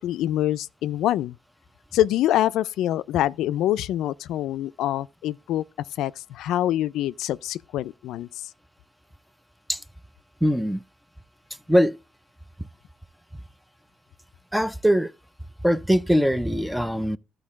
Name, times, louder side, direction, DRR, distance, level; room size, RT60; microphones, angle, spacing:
voice 1, 0.0-1.4 1.9-5.6 6.0-8.5, left 13 dB, 85° left, 0.3 m, -25 dB
voice 2, 10.4-10.8 11.7-12.0 12.6-12.7 14.5-15.1 15.6-17.2, equal, ahead, 0.5 m, -21 dB
12.5 x 4.5 x 3.6 m
cardioid pair, 90°, 0 cm